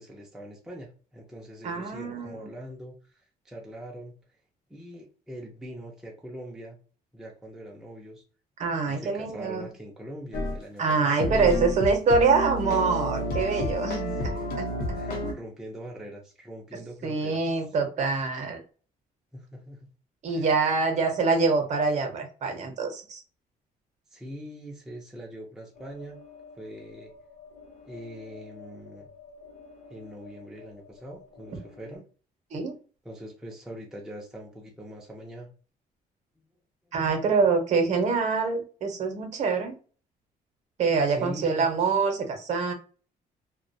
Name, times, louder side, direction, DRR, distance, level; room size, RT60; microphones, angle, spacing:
voice 1, 0.0-4.1 4.7-6.8 7.1-8.2 8.9-11.2 14.2-17.4 19.3-19.9 20.3-20.5 24.1-26.2 26.6-27.1 27.9-29.1 29.9-32.1 33.0-35.5 41.2-41.7, equal, 5° right, -1 dB, 0.4 m, -42 dB
voice 2, 1.6-2.5 8.6-9.6 10.8-14.7 15.2-15.4 17.0-18.6 20.2-23.2 32.5-32.7 36.9-39.7 40.8-42.7, right 4 dB, 50° right, 4 dB, 0.7 m, -25 dB
sound 1, 10.3-10.6 10.9-11.0 11.2-15.3, left 1 dB, 70° left, 0.7 m, -30 dB
sound 2, 25.7-32.0, left 4 dB, 45° left, 0.9 m, -50 dB
2.3 x 2.1 x 2.6 m, 0.38 s
cardioid pair, 150°, 15 cm